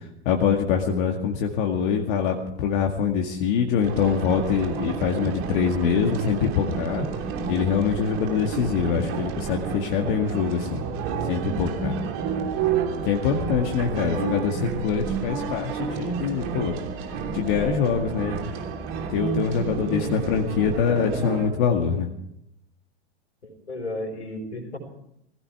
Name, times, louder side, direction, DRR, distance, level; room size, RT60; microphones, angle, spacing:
voice 1, 0.3-7.1 7.5-10.8 11.3-11.9 13.0-16.7 17.3-18.4 18.9-22.1, left 7 dB, 50° left, 2 dB, 2.1 m, -24 dB
sound 1, 3.8-21.5, right 6 dB, 40° right, 3.2 m, -30 dB
voice 2, 13.9-14.3 19.9-20.3 23.4-24.8, left 1 dB, 80° left, 4 dB, 4.9 m, -35 dB
19.0 x 16.0 x 4.7 m, 0.77 s
figure-of-eight pair, 100°, 33 cm